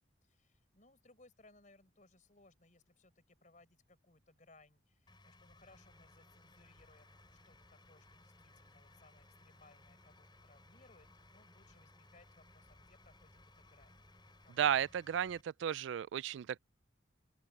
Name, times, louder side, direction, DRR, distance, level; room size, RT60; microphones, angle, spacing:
voice 1, 0.2-14.1 14.4-14.7, left 2 dB, 40° left, 4.7 m, -66 dB
sound 1, 5.1-15.4, left 2 dB, 25° left, 4.5 m, -62 dB
sound 2, 5.7-14.6, right 1 dB, 5° right, 4.0 m, -73 dB
voice 2, 14.6-16.6, right 9 dB, 70° right, 0.3 m, -34 dB
open air
head